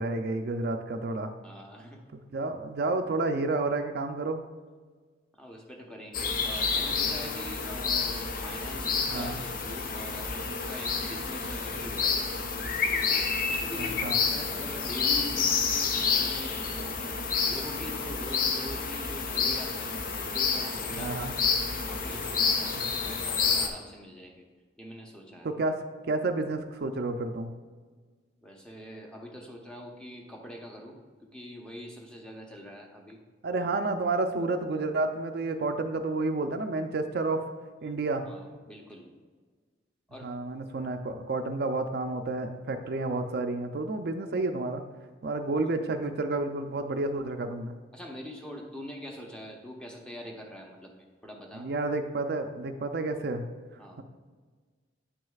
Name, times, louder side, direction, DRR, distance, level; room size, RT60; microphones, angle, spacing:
voice 1, 0.0-1.3 2.3-4.4 9.1-9.4 13.8-14.2 20.9-21.3 25.4-27.5 33.4-37.4 37.8-38.3 40.2-44.8 45.2-47.7 51.5-53.4, right 2 dB, 60° right, 6 dB, 0.4 m, -30 dB
voice 2, 1.4-2.0 5.3-12.2 12.8-24.5 24.8-25.5 28.4-33.2 38.2-39.1 40.1-40.3 47.9-51.7 53.8-54.0, equal, 5° left, 0 dB, 0.8 m, -44 dB
sound 1, 6.1-23.7, left 5 dB, 50° left, 0.6 m, -29 dB
9.5 x 6.3 x 2.4 m, 1.5 s
head